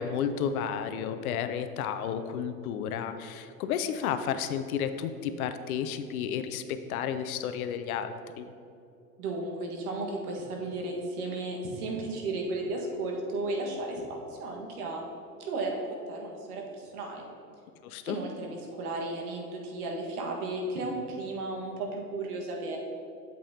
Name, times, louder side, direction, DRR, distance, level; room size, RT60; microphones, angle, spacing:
voice 1, 0.0-8.5 17.8-18.2, left 8 dB, 60° left, 10 dB, 0.6 m, -32 dB
voice 2, 9.2-15.0 15.4-17.2 18.0-22.8, right 2 dB, 65° right, 0 dB, 1.6 m, -34 dB
8.5 x 7.6 x 2.8 m, 2.6 s
hypercardioid pair, 100°, 48 cm